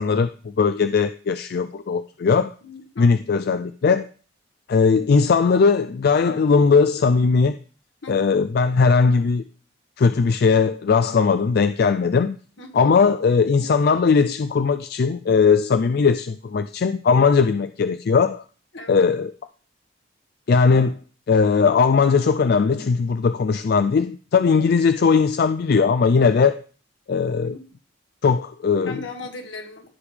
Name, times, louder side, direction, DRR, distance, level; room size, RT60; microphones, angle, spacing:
voice 1, 0.0-2.5 3.0-4.1 4.7-7.6 8.1-9.4 10.0-12.4 12.7-18.4 18.9-19.3 20.5-21.0 21.3-26.6 27.1-27.6 28.2-29.0, left 5 dB, 55° left, 0.4 m, -19 dB
voice 2, 2.6-3.2 8.0-8.4 12.6-12.9 18.7-19.1 27.4-27.7 28.9-29.9, left 3 dB, 75° left, 1.8 m, -38 dB
14.5 x 5.3 x 3.3 m
head